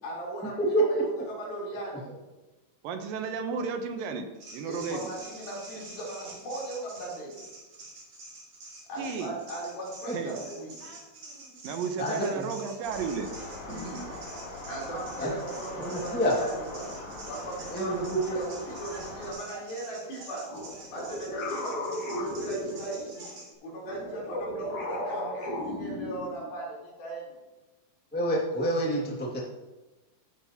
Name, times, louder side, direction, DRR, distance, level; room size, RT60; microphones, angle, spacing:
voice 1, 0.0-2.2 4.7-7.5 8.9-10.9 13.6-14.2 14.6-17.0 17.2-20.6 20.9-23.3 23.6-27.4, right 1 dB, 75° left, -5 dB, 5.5 m, -38 dB
voice 2, 0.6-1.0 1.9-2.0 10.1-10.2 12.0-12.5 15.2-15.3 15.8-16.4 17.7-18.4 28.1-29.4, right 1 dB, 10° left, -3 dB, 0.5 m, -27 dB
voice 3, 2.8-4.3 4.5-5.1 9.0-9.4 10.1-10.4 11.6-13.3, right 6 dB, 80° right, 6 dB, 2.4 m, -33 dB
sound 1, 4.4-23.5, right 2 dB, 50° right, 3.4 m, -46 dB
sound 2, 12.8-19.3, left 2 dB, 40° left, 2.7 m, -42 dB
sound 3, 20.5-23.2 23.8-26.5, left 1 dB, 55° left, 3.3 m, -35 dB
14.5 x 9.7 x 2.9 m, 1.1 s
omnidirectional pair, 4.3 m